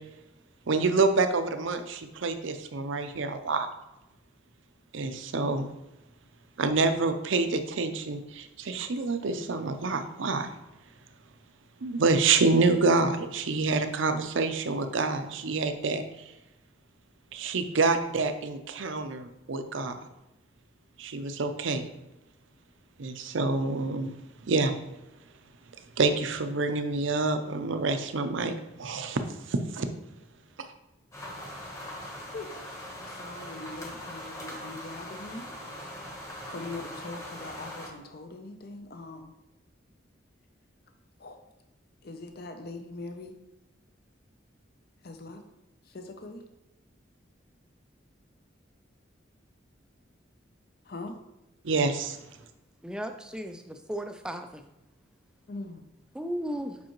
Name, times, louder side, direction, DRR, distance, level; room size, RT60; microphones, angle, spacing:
voice 1, 0.7-3.7 4.9-5.7 6.6-10.5 11.8-16.0 17.3-20.0 21.0-21.8 23.0-24.1 24.4-24.8 26.0-29.2 29.5-29.9 51.6-52.2, right 3 dB, 80° right, 0.6 m, -27 dB
sound 1, 31.1-37.9, left 1 dB, 15° left, 1.1 m, -41 dB
voice 2, 32.3-32.6 32.9-35.5 36.5-39.3 41.2-41.4 42.0-43.3 45.0-45.4 45.9-46.4 50.8-51.2 55.5-55.8, left 2 dB, 50° left, 0.6 m, -41 dB
voice 3, 52.8-54.6 56.1-56.8, equal, 5° right, 0.3 m, -35 dB
7.4 x 5.5 x 3.0 m
head